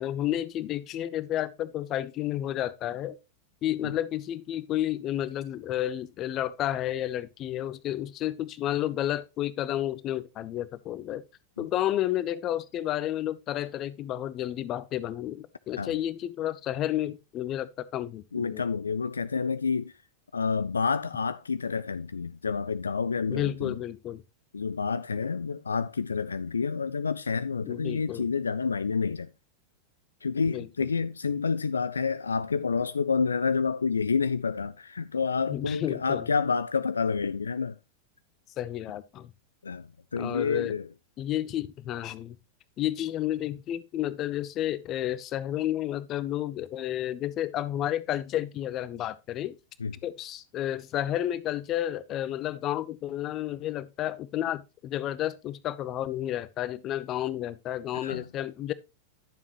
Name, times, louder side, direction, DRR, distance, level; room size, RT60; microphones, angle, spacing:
voice 1, 0.0-3.2 3.6-11.2 11.6-18.6 23.3-24.2 27.6-28.3 30.5-30.7 35.5-36.3 38.6-39.3 40.1-40.7 41.2-42.4 42.8-49.6 50.0-58.7, left 12 dB, 35° left, 0.7 m, -31 dB
voice 2, 18.3-19.9 20.3-23.8 24.5-29.3 30.2-37.8 39.6-40.9 49.8-49.9 57.9-58.3, left 5 dB, 75° left, 0.4 m, -29 dB
11.0 x 7.2 x 3.0 m
figure-of-eight pair, 90°, 0 cm